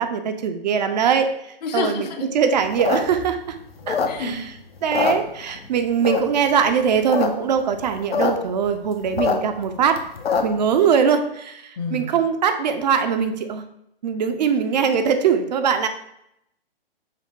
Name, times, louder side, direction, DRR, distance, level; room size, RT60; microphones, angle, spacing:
voice 1, 0.0-3.6 3.9-4.5 4.8-10.0 10.4-13.6 14.0-15.9, right 7 dB, 45° right, 7 dB, 0.5 m, -21 dB
voice 2, 1.6-2.2 4.1-4.3 11.8-12.1, left 5 dB, 45° left, 6 dB, 0.7 m, -28 dB
sound 1, 2.6-4.5 4.8-5.7 6.0-6.5 6.9-7.3 7.5-7.6 7.8-8.3 8.7-10.7, left 5 dB, 85° left, 0.8 m, -23 dB
5.7 x 2.1 x 4.4 m, 0.77 s
hypercardioid pair, 135°, 30 cm